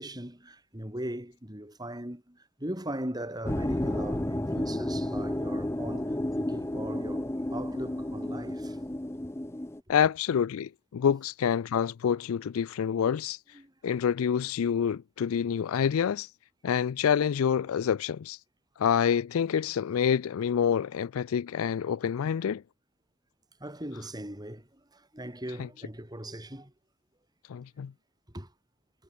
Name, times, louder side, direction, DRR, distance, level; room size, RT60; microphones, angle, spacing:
voice 1, 0.0-8.8 13.5-13.7 23.6-26.7 28.3-28.5, right 1 dB, 20° right, 4.3 m, -39 dB
sound 1, 3.5-9.8, left 1 dB, 10° left, 0.6 m, -32 dB
voice 2, 9.9-13.4 13.8-16.3 16.6-18.4 18.8-22.6 27.5-27.9, left 8 dB, 75° left, 0.4 m, -27 dB
head